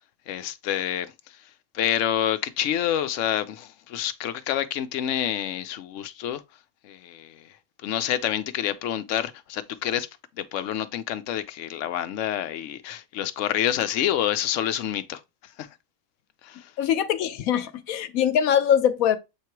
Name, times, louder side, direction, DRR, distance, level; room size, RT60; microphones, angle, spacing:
voice 1, 0.3-1.1 1.7-6.4 6.8-7.5 7.8-10.1 10.4-15.2 15.6-15.7 16.4-16.7, left 11 dB, 65° left, 1.0 m, -28 dB
voice 2, 16.8-19.2, left 9 dB, 90° left, 1.1 m, -22 dB
7.5 x 2.8 x 4.6 m
omnidirectional pair, 1.5 m